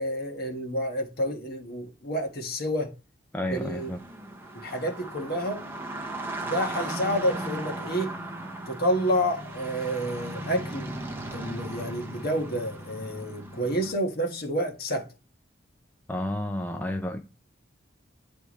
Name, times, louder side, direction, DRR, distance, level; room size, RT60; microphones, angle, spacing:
voice 1, 0.0-2.9 3.4-3.9 4.5-5.7 6.4-8.1 8.7-10.9 11.3-15.1, equal, 55° left, 1.4 m, -29 dB
voice 2, 3.3-4.0 16.1-17.2, left 1 dB, 10° left, 0.5 m, -31 dB
sound 1, 3.5-13.9, right 1 dB, 10° right, 0.8 m, -37 dB
9.7 x 3.4 x 3.0 m
head